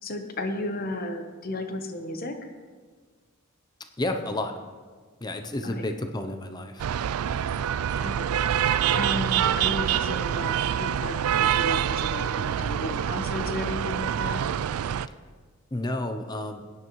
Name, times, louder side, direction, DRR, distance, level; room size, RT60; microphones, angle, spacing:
voice 1, 0.0-2.5 5.6-5.8 8.0-8.5 8.9-14.4, left 1 dB, 45° left, 6 dB, 1.0 m, -34 dB
voice 2, 4.0-4.5 5.2-6.9 15.7-16.6, left 1 dB, 20° left, 6 dB, 0.6 m, -31 dB
sound 1, 6.8-15.1, right 9 dB, 90° right, 0.3 m, -26 dB
17.5 x 9.5 x 3.1 m, 1.5 s
head